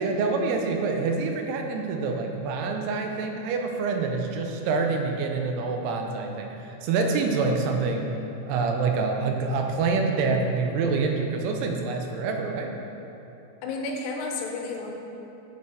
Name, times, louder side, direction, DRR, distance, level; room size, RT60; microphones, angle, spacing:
voice 1, 0.0-8.1 8.5-12.8, right 4 dB, 85° right, 3 dB, 2.6 m, -26 dB
voice 2, 13.6-15.0, left 3 dB, 85° left, 1 dB, 2.8 m, -31 dB
6.5 x 6.4 x 3.4 m, 2.9 s
omnidirectional pair, 4.7 m